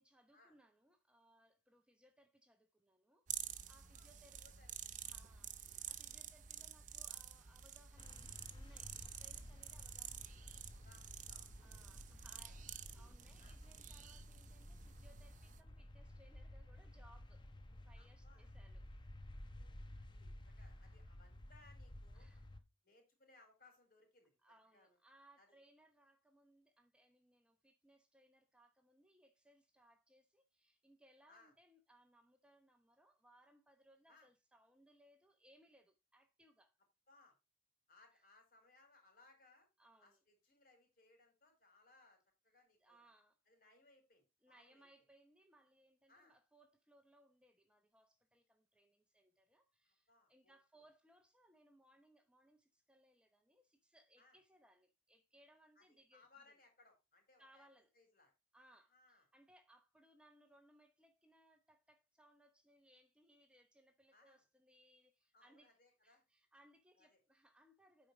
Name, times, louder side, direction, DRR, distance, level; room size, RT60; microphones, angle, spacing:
voice 1, 0.0-4.4 5.0-10.6 11.6-12.6 12.9-18.9 22.1-22.5 24.4-36.8 38.1-38.2 39.8-40.2 42.8-43.4 44.4-56.3 57.4-57.9 58.5-65.8 66.0-68.1, right 1 dB, 5° right, 0.8 m, -69 dB
sound 1, 3.3-15.6, right 10 dB, 45° right, 0.8 m, -50 dB
voice 2, 3.8-4.1 4.4-4.7 10.6-11.8 12.1-13.1 13.4-13.6 18.0-18.5 19.5-22.3 22.8-24.4 24.7-25.0 25.4-25.6 31.3-31.5 34.1-34.3 37.1-37.3 37.9-39.7 40.0-43.1 43.5-44.9 46.1-46.4 49.8-50.8 54.2-54.4 55.8-57.7 57.9-58.3 58.7-59.3 64.1-64.4 65.3-66.2 67.0-67.2, left 3 dB, 55° left, 4.8 m, -69 dB
sound 2, 8.0-22.6, left 1 dB, 25° left, 0.8 m, -55 dB
9.3 x 5.4 x 4.8 m
head